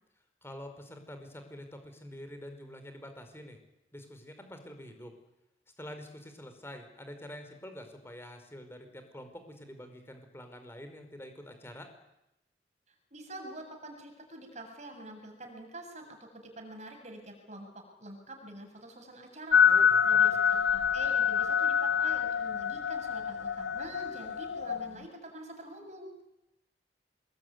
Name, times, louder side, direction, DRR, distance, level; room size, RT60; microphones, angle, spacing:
voice 1, 0.4-3.6 3.9-5.1 5.8-11.9 19.7-20.2, equal, 15° left, 6 dB, 5.0 m, -46 dB
voice 2, 13.1-19.6 20.0-26.1, right 1 dB, 40° right, 3 dB, 7.4 m, -46 dB
sound 1, 19.5-24.9, left 7 dB, 70° left, 0.9 m, -26 dB
27.0 x 21.5 x 9.6 m, 0.90 s
head